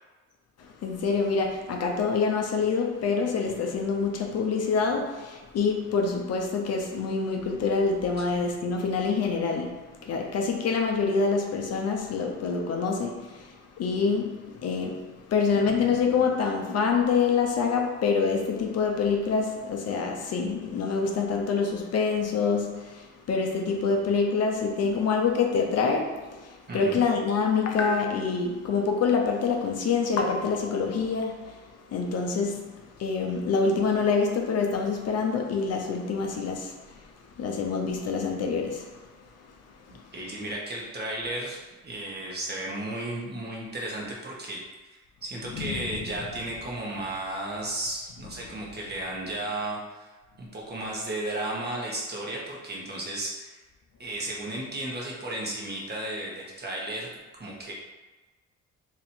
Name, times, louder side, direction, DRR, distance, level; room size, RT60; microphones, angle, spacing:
voice 1, 0.6-39.5 39.8-40.1 45.5-46.0, left 5 dB, 55° left, 1 dB, 0.6 m, -26 dB
voice 2, 26.7-27.0 40.1-53.6 54.0-57.7, right 1 dB, 35° right, -3 dB, 1.1 m, -34 dB
2.9 x 2.6 x 4.3 m, 1.2 s
cardioid pair, 90°, 30 cm